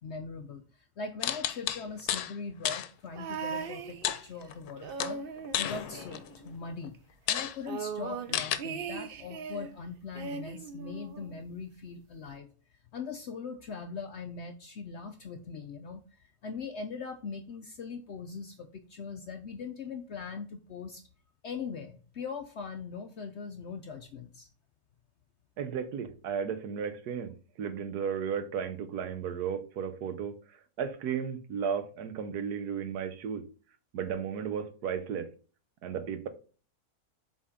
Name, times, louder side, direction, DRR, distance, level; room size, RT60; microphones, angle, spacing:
voice 1, 0.0-12.5 12.9-21.0 21.4-24.5, left 5 dB, 65° left, 0.7 m, -41 dB
sound 1, 1.2-2.3 2.7-2.9 4.0-4.7 5.0-6.4 6.8-6.9 7.3-7.6 8.3-8.6, left 11 dB, 85° left, 1.2 m, -31 dB
sound 2, 3.2-4.4 4.8-6.7 6.9-7.0 7.3-9.7 10.1-11.4 12.3-12.4, right 5 dB, 65° right, 0.5 m, -39 dB
voice 2, 25.6-33.4 33.9-35.3 35.8-36.3, right 7 dB, 90° right, 1.4 m, -34 dB
7.4 x 4.3 x 3.7 m
omnidirectional pair, 1.6 m